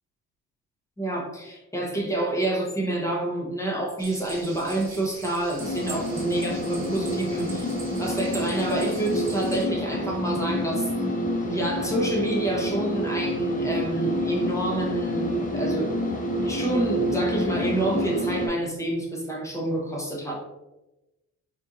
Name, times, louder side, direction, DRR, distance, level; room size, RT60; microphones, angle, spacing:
voice 1, 1.0-10.9 11.4-16.1 16.4-20.3, right 1 dB, 10° left, -2 dB, 1.0 m, -28 dB
sound 1, 4.0-9.6, right 3 dB, 40° right, 1.2 m, -42 dB
sound 2, 5.6-18.5, equal, 25° left, 0.7 m, -28 dB
4.3 x 2.7 x 2.5 m, 0.99 s
cardioid pair, 90°, 30 cm